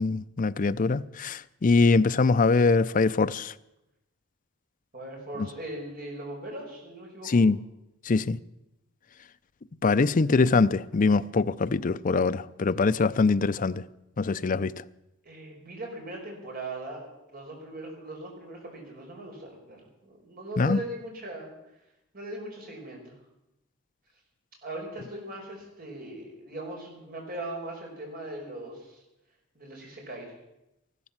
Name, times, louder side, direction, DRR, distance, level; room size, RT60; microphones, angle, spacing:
voice 1, 0.0-3.5 7.3-7.6 8.0-8.4 9.8-13.8 14.2-14.7 20.6-20.8, left 4 dB, 40° left, 0.5 m, -23 dB
voice 2, 4.9-7.4 15.2-21.5 22.1-23.1 24.6-29.0 29.6-30.3, right 1 dB, 50° right, 5.2 m, -39 dB
15.0 x 12.5 x 7.3 m
head